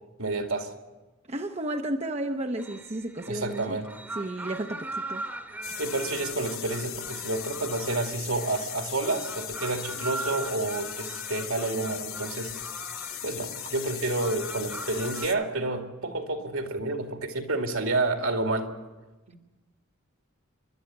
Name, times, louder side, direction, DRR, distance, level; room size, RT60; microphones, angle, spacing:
voice 1, 0.2-0.7 3.3-3.9 5.8-12.5 13.2-18.7 19.3-19.4, right 2 dB, 70° right, 4 dB, 2.5 m, -29 dB
voice 2, 1.3-3.8 4.1-5.3, right 1 dB, 30° right, 5 dB, 0.8 m, -32 dB
sound 1, 2.6-15.3, right 2 dB, 10° right, 1.3 m, -40 dB
sound 2, 5.6-15.4, left 13 dB, 70° left, 1.2 m, -38 dB
29.0 x 12.5 x 9.5 m, 1.2 s
head